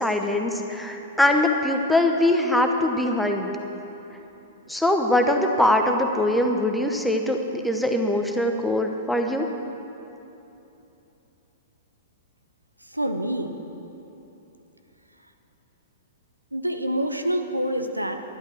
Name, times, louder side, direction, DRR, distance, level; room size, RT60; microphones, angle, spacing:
voice 1, 0.0-3.5 4.7-9.5, left 1 dB, ahead, 3 dB, 0.9 m, -22 dB
voice 2, 12.8-13.6 16.5-18.2, equal, 85° right, 6 dB, 0.8 m, -27 dB
11.5 x 11.5 x 6.2 m, 3.0 s
figure-of-eight pair, 105°, 0 cm